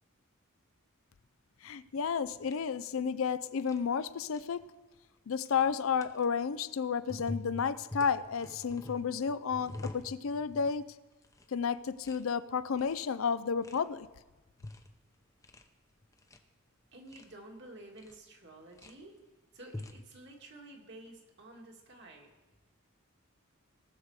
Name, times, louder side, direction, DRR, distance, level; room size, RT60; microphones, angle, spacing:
voice 1, 1.6-4.7 5.3-10.9 11.5-14.1, left 6 dB, 70° left, 15 dB, 0.5 m, -32 dB
sound 1, 2.4-2.6 3.6-3.8 4.0-4.4 5.3-5.6 6.0-6.2 7.1-10.8 11.1-11.5 11.8-12.2 12.6-13.1 13.6-13.8 14.4-14.9 15.2-15.7 16.0-16.4 16.9-17.3 18.0-18.1 18.6-18.9 19.6-20.0, left 2 dB, 15° left, 0.7 m, -45 dB
voice 2, 16.9-19.1 19.5-22.3, right 1 dB, 55° right, 0 dB, 2.0 m, -51 dB
18.5 x 6.7 x 4.8 m, 1.1 s
head